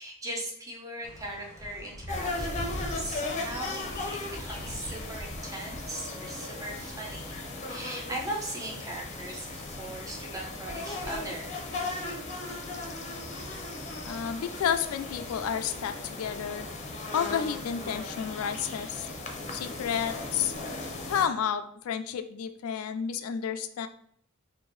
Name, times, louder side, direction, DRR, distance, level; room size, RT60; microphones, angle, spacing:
voice 1, 0.0-3.9 4.3-7.4 7.7-12.1, right 1 dB, 15° right, -1 dB, 0.8 m, -39 dB
sound 1, 1.0-16.8, equal, 10° left, 1.0 m, -45 dB
sound 2, 2.1-21.3, left 2 dB, 35° left, 0.7 m, -37 dB
voice 2, 14.0-16.7 17.1-19.1 19.5-20.6 21.0-23.9, left 8 dB, 80° left, 9 dB, 0.3 m, -31 dB
4.4 x 2.6 x 3.1 m, 0.65 s
head